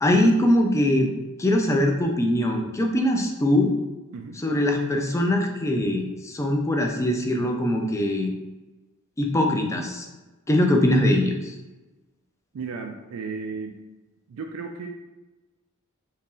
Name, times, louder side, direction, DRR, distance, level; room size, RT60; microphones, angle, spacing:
voice 1, 0.0-3.8 4.3-8.3 9.2-10.1 10.5-11.6, left 1 dB, 15° left, 2 dB, 0.3 m, -22 dB
voice 2, 12.5-13.8 14.3-14.9, right 4 dB, 80° right, 3 dB, 0.3 m, -34 dB
2.9 x 2.6 x 3.7 m, 1.1 s
head